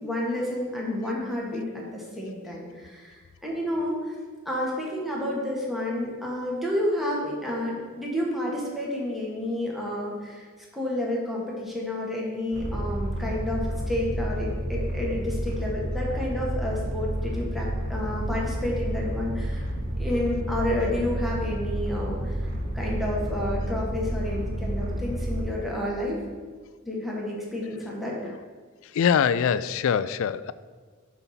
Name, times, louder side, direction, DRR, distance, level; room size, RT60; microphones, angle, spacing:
voice 1, 0.0-4.1 4.4-10.5 10.7-19.7 20.0-22.4 22.7-26.2 26.8-28.3, left 1 dB, ahead, -4 dB, 1.4 m, -30 dB
sound 1, 12.5-25.4, right 1 dB, 80° right, 2.1 m, -30 dB
voice 2, 28.8-30.5, left 7 dB, 65° left, 15 dB, 0.3 m, -24 dB
8.2 x 4.1 x 5.7 m, 1.5 s
head